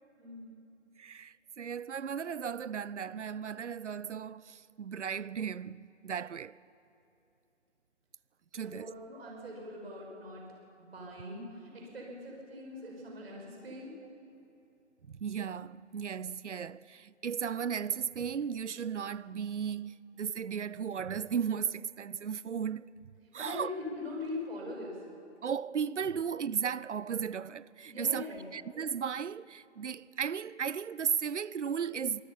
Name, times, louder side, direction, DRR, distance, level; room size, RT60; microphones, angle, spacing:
voice 1, 0.2-0.5 8.5-10.5 10.8-13.9 23.3-25.0 27.9-28.4, left 2 dB, 55° right, 6.6 m, -42 dB
voice 2, 1.0-6.6 8.5-8.9 14.3-14.4 15.1-22.9 23.3-23.7 25.4-28.3 28.5-32.2, right 7 dB, 70° right, 0.6 m, -35 dB
25.0 x 19.0 x 5.7 m
figure-of-eight pair, 145°, 37 cm